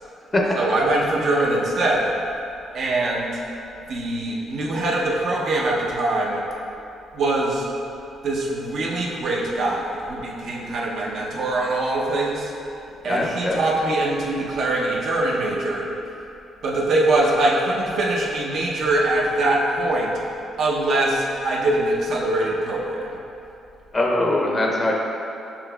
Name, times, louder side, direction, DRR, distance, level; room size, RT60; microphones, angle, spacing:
voice 1, 0.6-2.1 2.7-3.4 3.9-6.4 7.1-7.7 8.2-12.5 13.0-15.9 16.6-20.1 20.6-23.1, right 2 dB, 65° right, -3 dB, 0.7 m, -23 dB
voice 2, 13.0-13.6 23.9-24.9, left 1 dB, 30° left, -1 dB, 0.5 m, -22 dB
7.2 x 2.9 x 2.3 m, 2.8 s
cardioid pair, 90°, 0 cm